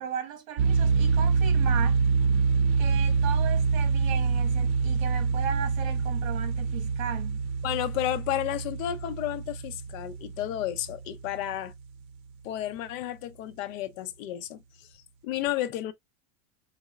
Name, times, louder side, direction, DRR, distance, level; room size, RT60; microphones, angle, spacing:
voice 1, 0.0-2.0 2.8-7.4, right 9 dB, 70° right, 1.6 m, -36 dB
sound 1, 0.6-11.4, right 5 dB, 85° right, 0.7 m, -26 dB
voice 2, 7.6-11.7 12.4-14.9 15.2-15.9, left 13 dB, 70° left, 0.8 m, -32 dB
4.3 x 3.4 x 2.3 m
supercardioid pair, 180°, 41 cm